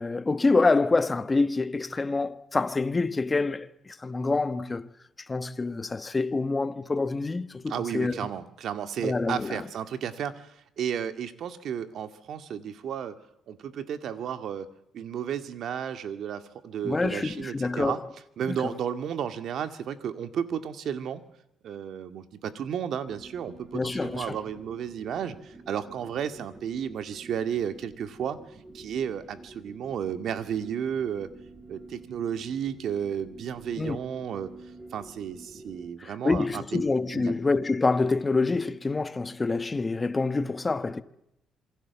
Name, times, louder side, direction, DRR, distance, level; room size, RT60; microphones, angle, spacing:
voice 1, 0.0-4.9 5.3-8.2 9.0-9.6 16.8-18.0 18.5-18.7 23.7-24.4 33.8-34.0 36.0-41.0, left 3 dB, 20° left, 1.2 m, -26 dB
voice 2, 7.7-13.2 13.5-18.0 18.4-21.2 21.6-28.4 28.7-31.3 31.7-34.5 34.9-36.8 37.1-37.3, right 8 dB, 65° right, 2.1 m, -33 dB
sound 1, 23.0-35.9, right 2 dB, 30° right, 5.5 m, -48 dB
27.0 x 23.5 x 7.2 m
cardioid pair, 115°, 0 cm